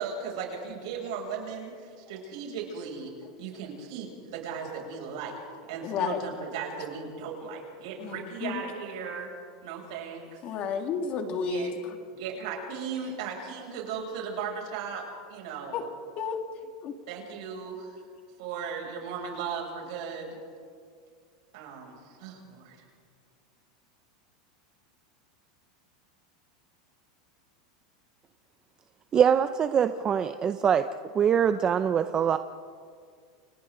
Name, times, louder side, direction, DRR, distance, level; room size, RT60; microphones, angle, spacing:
voice 1, 0.0-3.1 3.4-5.4 5.7-9.3 9.6-10.4 11.5-11.7 12.1-15.9 17.1-18.0 18.4-20.4 21.5-22.8, right 6 dB, 65° right, 0 dB, 7.0 m, -37 dB
voice 2, 5.8-6.2 8.0-8.6 10.4-12.0 15.7-15.8 16.2-16.9, left 6 dB, 35° left, 5 dB, 2.2 m, -32 dB
voice 3, 29.1-30.9 31.1-32.4, right 8 dB, 20° right, 10 dB, 0.6 m, -23 dB
29.5 x 27.0 x 3.9 m, 2.1 s
supercardioid pair, 155°, 3 cm